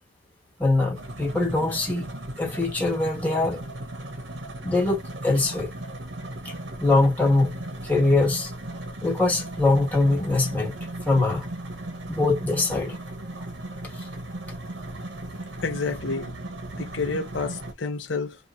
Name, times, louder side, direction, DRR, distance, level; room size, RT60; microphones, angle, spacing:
voice 1, 0.6-2.1 2.4-3.6 4.6-5.7 6.4-6.5 6.8-7.6 7.8-8.5 9.0-10.8 11.0-11.5 12.1-13.2 14.0-14.1, left 2 dB, 10° left, 1.3 m, -23 dB
sound 1, 1.0-17.7, right 1 dB, 70° right, 1.1 m, -37 dB
voice 2, 15.6-16.3 16.8-18.4, left 4 dB, 75° left, 0.7 m, -29 dB
3.0 x 2.6 x 2.6 m
head